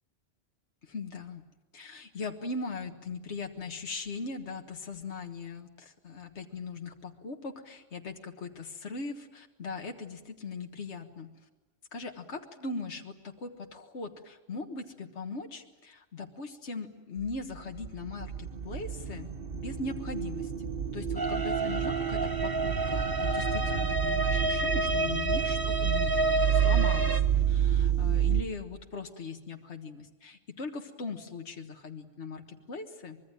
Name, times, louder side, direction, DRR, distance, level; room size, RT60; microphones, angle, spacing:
voice 1, 0.8-1.4 1.7-11.3 11.9-33.2, left 3 dB, 75° left, 3 dB, 1.8 m, -40 dB
sound 1, 17.2-28.4, right 9 dB, 55° right, 1.3 m, -29 dB
sound 2, 21.2-27.2, right 1 dB, 20° right, 1.0 m, -30 dB
24.5 x 22.5 x 8.9 m, 1.1 s
omnidirectional pair, 1.2 m